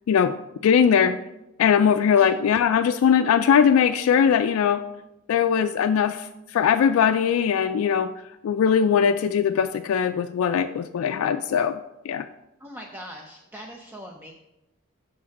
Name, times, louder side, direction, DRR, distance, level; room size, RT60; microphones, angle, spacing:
voice 1, 0.6-1.2 1.6-4.8 5.3-8.1 8.4-11.8 12.1-12.3, left 7 dB, 80° left, 10 dB, 0.3 m, -20 dB
voice 2, 12.6-14.3, equal, 10° right, 1 dB, 0.5 m, -41 dB
6.0 x 4.8 x 5.9 m, 0.94 s
head